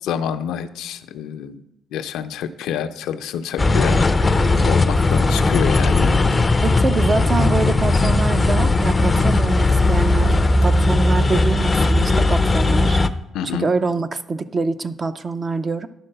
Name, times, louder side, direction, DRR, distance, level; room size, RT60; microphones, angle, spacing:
voice 1, 0.1-1.6 1.9-6.6 13.3-13.7, left 8 dB, 85° left, 8 dB, 0.5 m, -28 dB
sound 1, 3.6-13.1, left 2 dB, 25° left, 0.5 m, -17 dB
voice 2, 6.3-10.3 10.6-13.0 13.5-15.9, right 4 dB, 35° right, 10 dB, 0.6 m, -25 dB
11.0 x 3.8 x 6.6 m, 0.85 s
cardioid pair, 90°, 0 cm